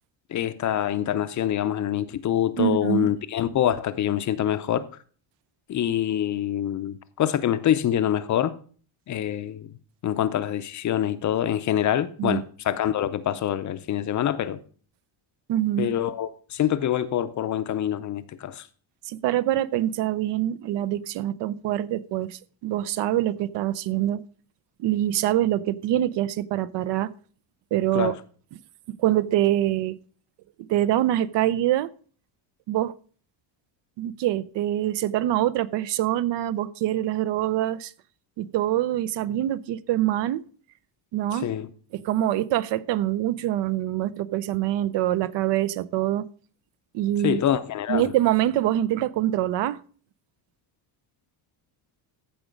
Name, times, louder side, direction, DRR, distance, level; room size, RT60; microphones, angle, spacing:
voice 1, 0.3-4.9 5.7-8.5 9.1-9.7 10.0-14.6 15.8-18.6 27.9-28.2 41.4-41.7 47.2-48.0, left 10 dB, 40° left, 0.5 m, -25 dB
voice 2, 2.6-3.1 12.2-12.4 15.5-15.9 19.1-24.2 24.8-27.1 27.7-28.1 28.5-28.6 28.9-30.0 30.6-31.9 32.7-32.9 34.0-37.9 38.4-40.4 41.1-41.5 41.9-46.3 46.9-47.4 47.9-49.8, right 13 dB, 65° right, 0.6 m, -25 dB
14.5 x 4.9 x 5.1 m
cardioid pair, 165°, 47 cm